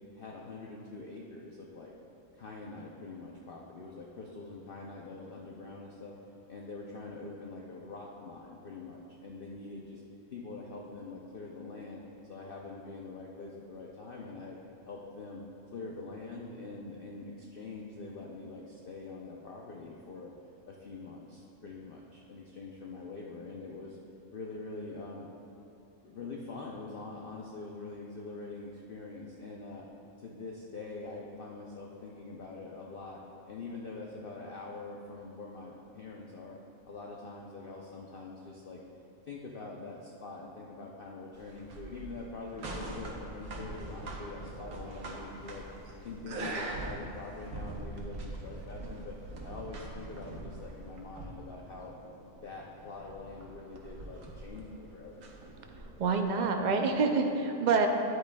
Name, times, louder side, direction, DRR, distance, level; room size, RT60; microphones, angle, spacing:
voice 1, 0.2-1.9 2.3-6.2 6.5-10.0 10.3-12.0 12.3-14.6 14.9-15.4 15.7-20.3 20.6-24.0 24.3-25.3 26.0-29.9 30.2-36.6 36.8-38.8 39.2-45.6 46.0-49.2 49.4-51.9 52.3-55.2, left 3 dB, 55° left, -2 dB, 0.7 m, -44 dB
sound 1, 41.3-56.2, right 2 dB, 90° right, 1.4 m, -43 dB
voice 2, 56.0-57.9, right 4 dB, 60° right, 4 dB, 0.4 m, -27 dB
11.0 x 8.5 x 2.2 m, 2.8 s
omnidirectional pair, 1.4 m